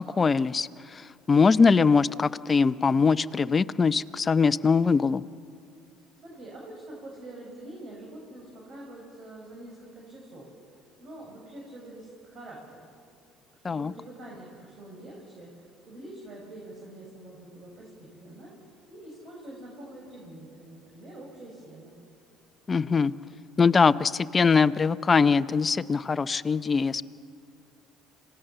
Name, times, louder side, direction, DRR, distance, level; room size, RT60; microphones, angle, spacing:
voice 1, 0.0-5.2 13.6-13.9 22.7-23.1 23.6-27.0, left 5 dB, 30° left, 14 dB, 0.6 m, -22 dB
voice 2, 6.2-10.5 11.0-12.9 13.6-18.5 18.9-22.0, right 1 dB, 50° right, -2 dB, 5.9 m, -45 dB
26.5 x 18.0 x 6.8 m, 2.3 s
supercardioid pair, 85°, 0 cm